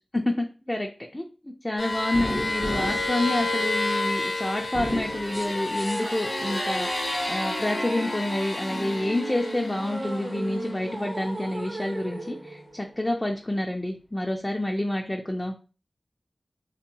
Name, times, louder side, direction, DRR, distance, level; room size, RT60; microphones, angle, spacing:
voice 1, 0.2-15.6, left 1 dB, 25° left, 1 dB, 0.4 m, -28 dB
sound 1, 1.8-12.6, left 2 dB, 90° left, 1.1 m, -31 dB
sound 2, 2.1-4.1 4.6-5.9 6.4-7.3, right 1 dB, 35° right, 0.5 m, -35 dB
sound 3, 4.8-13.4, right 2 dB, 65° right, 0.8 m, -38 dB
2.7 x 2.3 x 2.6 m, 0.35 s
cardioid pair, 45°, 0 cm